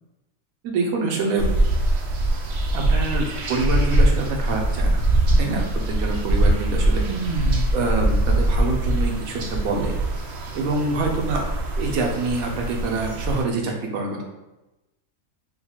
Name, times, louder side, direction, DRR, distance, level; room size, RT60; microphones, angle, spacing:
voice 1, 0.6-1.5 2.7-5.0 5.4-7.0 7.7-10.0 10.5-11.5 11.8-14.2, right 3 dB, 80° right, 2 dB, 1.1 m, -26 dB
sound 1, 1.4-13.4, right 1 dB, 65° right, 0.7 m, -22 dB
3.9 x 2.2 x 2.9 m, 1.0 s
omnidirectional pair, 1.4 m